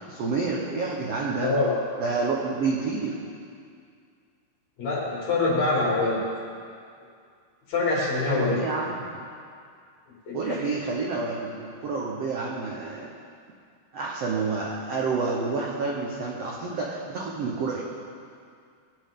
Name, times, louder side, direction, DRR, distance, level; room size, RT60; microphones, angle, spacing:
voice 1, 0.1-1.5 2.0-3.2 8.3-9.0 10.3-13.1 13.9-17.8, right 4 dB, 70° right, -3 dB, 1.5 m, -29 dB
voice 2, 1.4-1.7 4.8-6.2 7.7-8.6 10.3-10.7, left 3 dB, 50° left, -6 dB, 4.0 m, -25 dB
18.5 x 10.5 x 3.7 m, 2.3 s
omnidirectional pair, 4.2 m